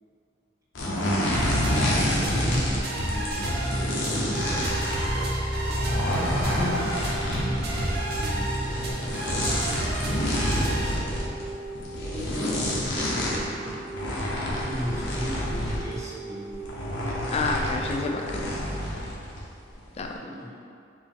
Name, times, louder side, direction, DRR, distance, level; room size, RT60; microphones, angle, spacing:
sound 1, 0.7-2.8 3.1-16.0 16.5-19.4 19.7-20.0, left 1 dB, 75° left, 0.9 m, -28 dB
sound 2, 1.3-10.9, right 1 dB, 55° right, 0.8 m, -29 dB
voice 1, 1.7-3.5 3.9-4.6 5.1-5.8 8.2-8.6 12.1-13.4 14.5-16.6 20.2-20.5, equal, 15° right, -6 dB, 0.7 m, -37 dB
sound 3, 3.7-18.8, right 4 dB, 40° right, 0.4 m, -40 dB
voice 2, 6.6-6.9 17.3-18.7 20.0-20.3, left 3 dB, 35° left, 1 dB, 0.4 m, -30 dB
4.5 x 2.9 x 3.5 m, 2.4 s
head